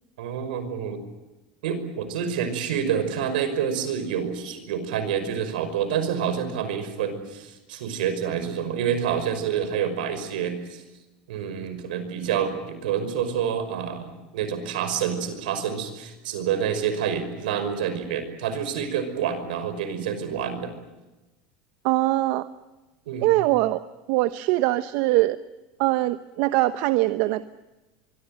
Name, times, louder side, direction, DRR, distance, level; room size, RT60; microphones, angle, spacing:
voice 1, 0.2-1.0 1.6-10.8 11.3-20.8 23.1-23.3, right 8 dB, 85° right, 10 dB, 5.6 m, -28 dB
voice 2, 21.8-22.5 23.2-25.4 25.8-27.4, right 18 dB, 65° right, 12 dB, 1.0 m, -22 dB
24.5 x 24.0 x 7.8 m, 1.1 s
supercardioid pair, 115°, 5 cm